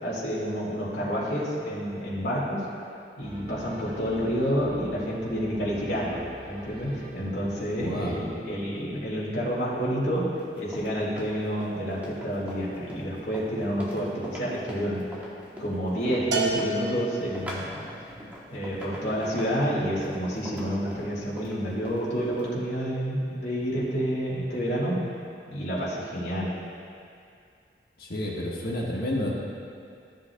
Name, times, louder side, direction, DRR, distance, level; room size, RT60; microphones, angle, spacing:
voice 1, 0.0-2.6 3.2-10.2 10.6-15.0 15.6-17.8 18.5-25.0 25.5-26.5, equal, 80° left, -7 dB, 2.1 m, -29 dB
sound 1, 3.2-8.7, equal, 35° right, 1.0 m, -46 dB
voice 2, 7.8-8.2 28.0-29.3, left 1 dB, 60° left, -3 dB, 1.4 m, -30 dB
Run, 10.4-22.5, equal, 10° right, 1.0 m, -41 dB
Bell, 16.3-17.7, right 3 dB, 80° right, 1.2 m, -30 dB
13.5 x 7.5 x 2.3 m, 2.4 s
head